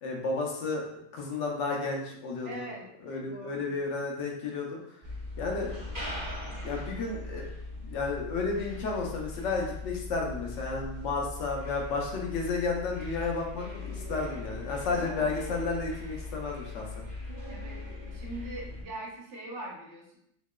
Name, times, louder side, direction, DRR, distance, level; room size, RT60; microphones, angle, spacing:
voice 1, 0.0-2.7 3.0-4.8 5.4-5.7 6.4-7.5 7.8-17.0, left 3 dB, 70° left, 0 dB, 0.9 m, -32 dB
voice 2, 2.4-2.8 3.2-3.7 17.5-17.8 18.1-20.2, right 2 dB, 65° right, -2 dB, 1.0 m, -42 dB
sound 1, 5.0-18.8, left 2 dB, 20° right, 0.7 m, -39 dB
3.0 x 2.8 x 2.2 m, 0.74 s
omnidirectional pair, 1.4 m